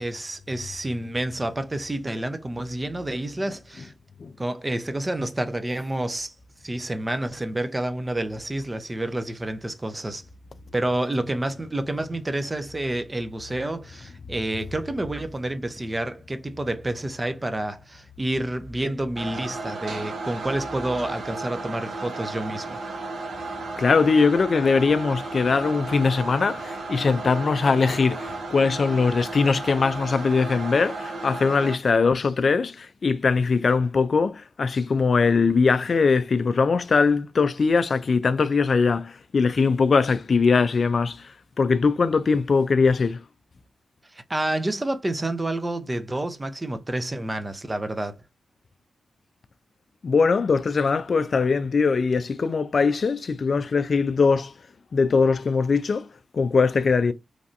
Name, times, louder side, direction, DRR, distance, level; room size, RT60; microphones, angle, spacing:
voice 1, 0.0-3.9 4.4-6.3 6.6-10.2 10.7-22.8 44.1-48.2, right 1 dB, 25° right, 0.6 m, -29 dB
sound 1, 19.2-31.7, right 3 dB, 80° right, 0.9 m, -34 dB
voice 2, 23.8-43.2 50.0-54.5 54.9-56.1 56.3-57.1, left 4 dB, 60° left, 0.3 m, -21 dB
3.2 x 2.6 x 2.5 m
supercardioid pair, 45°, 0 cm